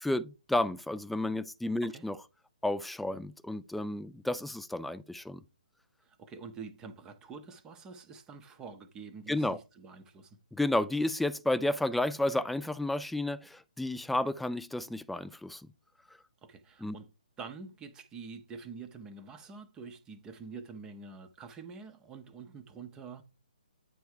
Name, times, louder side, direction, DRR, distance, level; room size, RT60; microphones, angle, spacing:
voice 1, 0.0-2.2 2.6-5.4 9.3-9.6 10.5-15.6 16.8-17.0, left 1 dB, ahead, 0.3 m, -31 dB
voice 2, 6.0-10.4 16.4-17.1 17.4-23.2, right 5 dB, 15° right, 0.7 m, -46 dB
9.2 x 3.4 x 4.7 m
hypercardioid pair, 145°, 5 cm